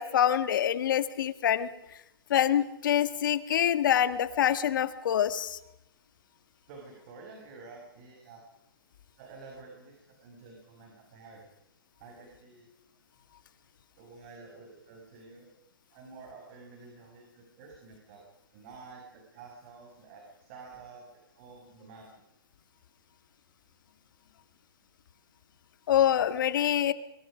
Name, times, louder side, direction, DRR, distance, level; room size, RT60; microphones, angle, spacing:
voice 1, 0.0-1.7 2.3-5.6 25.9-26.9, left 10 dB, 55° left, 14 dB, 1.7 m, -25 dB
voice 2, 6.7-8.4 9.2-11.5 12.0-12.7 14.0-15.5 15.9-18.2 18.5-21.1 21.3-22.2, right 4 dB, 35° right, 0 dB, 6.4 m, -50 dB
25.5 x 25.0 x 5.1 m, 0.86 s
hypercardioid pair, 155°, 13 cm